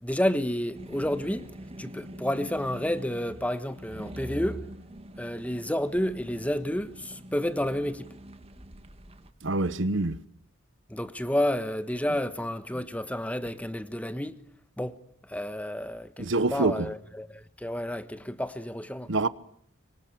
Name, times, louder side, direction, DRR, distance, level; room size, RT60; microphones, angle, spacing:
voice 1, 0.0-1.5 1.8-4.6 5.2-8.1 10.9-14.3 14.8-15.0 15.3-19.1, left 1 dB, 5° left, 1.3 m, -30 dB
sound 1, 0.7-9.3, right 1 dB, 30° right, 1.7 m, -43 dB
voice 2, 9.4-10.2 16.2-16.7 19.1-19.3, right 3 dB, 65° right, 1.1 m, -25 dB
25.5 x 24.5 x 8.7 m
head